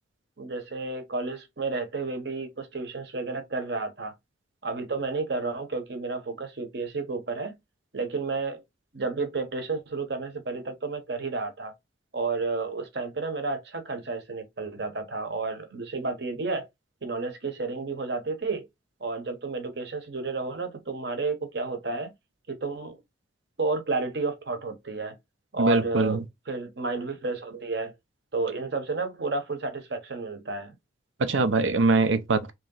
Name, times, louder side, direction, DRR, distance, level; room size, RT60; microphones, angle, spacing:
voice 1, 0.4-4.1 4.6-7.5 7.9-8.6 8.9-11.7 12.1-16.7 17.0-18.7 19.0-22.1 22.5-23.0 23.6-25.2 25.5-27.9 28.3-30.8 31.2-31.5, right 3 dB, 60° right, 0.9 m, -31 dB
voice 2, 25.6-26.2 31.2-32.5, right 3 dB, 85° right, 0.6 m, -22 dB
3.1 x 2.9 x 3.8 m
head